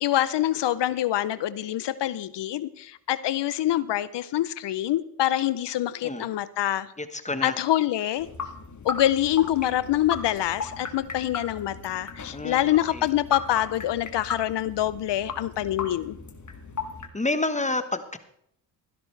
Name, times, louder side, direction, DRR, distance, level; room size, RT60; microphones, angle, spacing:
voice 1, 0.0-6.9 7.4-8.3 8.8-16.2, left 13 dB, 60° left, 17 dB, 0.7 m, -25 dB
voice 2, 7.0-7.6 12.3-13.1 17.1-18.2, left 2 dB, 15° left, 10 dB, 1.2 m, -29 dB
sound 1, 8.2-17.1, left 5 dB, 35° left, 2.1 m, -37 dB
16.0 x 12.5 x 3.3 m, 0.72 s
supercardioid pair, 65°, 48 cm